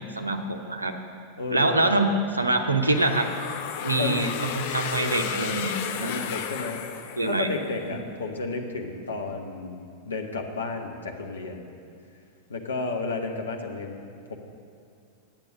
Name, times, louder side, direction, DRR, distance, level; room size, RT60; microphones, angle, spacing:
voice 1, 0.2-0.9 1.5-3.3 3.8-6.2 7.2-7.5 7.9-8.1, right 2 dB, 80° right, 5 dB, 0.8 m, -25 dB
voice 2, 1.4-1.9 4.0-4.3 6.0-6.8 7.3-11.6 12.5-14.0 14.3-14.4, left 3 dB, 70° left, 3 dB, 1.0 m, -32 dB
sound 1, 2.8-7.7, left 8 dB, 50° left, 0.6 m, -33 dB
8.8 x 8.6 x 6.4 m, 2.5 s
figure-of-eight pair, 90°, 0 cm